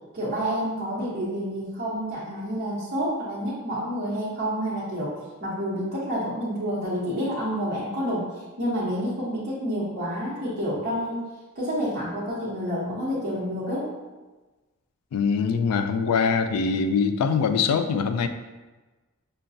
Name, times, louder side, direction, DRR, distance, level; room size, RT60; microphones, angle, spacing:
voice 1, 0.1-5.1 5.4-8.3 8.6-11.3 11.5-13.9, equal, 50° right, -9 dB, 0.9 m, -29 dB
voice 2, 15.1-18.3, left 5 dB, 90° left, 9 dB, 0.3 m, -23 dB
5.5 x 2.2 x 2.6 m, 1.2 s
head